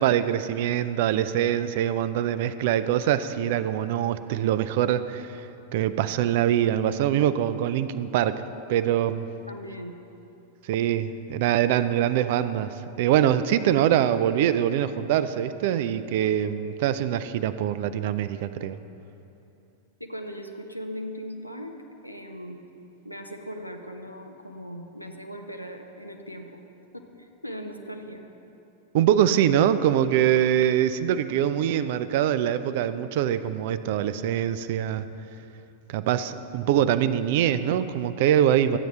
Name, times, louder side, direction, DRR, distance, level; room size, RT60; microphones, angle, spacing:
voice 1, 0.0-5.3 5.7-8.4 8.7-9.3 10.7-12.7 13.0-18.8 28.9-35.1 35.9-38.8, right 10 dB, 50° right, 13 dB, 0.4 m, -23 dB
voice 2, 9.5-9.9 20.0-21.8 22.0-22.6 23.0-26.6 26.9-28.2, equal, 90° left, 4 dB, 0.8 m, -39 dB
13.5 x 9.1 x 3.2 m, 2.8 s
figure-of-eight pair, 90°, 0 cm